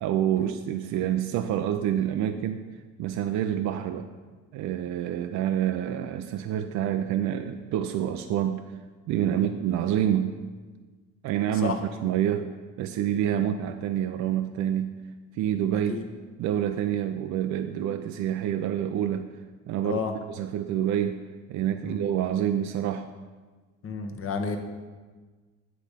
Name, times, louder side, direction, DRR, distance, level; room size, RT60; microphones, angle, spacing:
voice 1, 0.0-2.6 3.0-4.1 4.5-8.6 9.1-10.3 11.2-11.8 12.0-12.5 12.8-14.9 15.3-16.0 16.4-19.3 19.7-20.0 20.3-21.2 21.5-23.1, right 10 dB, 55° right, 7 dB, 0.4 m, -27 dB
voice 2, 23.8-24.6, left 5 dB, 40° left, 5 dB, 1.0 m, -31 dB
8.5 x 3.4 x 5.6 m, 1.4 s
supercardioid pair, 80°, 34 cm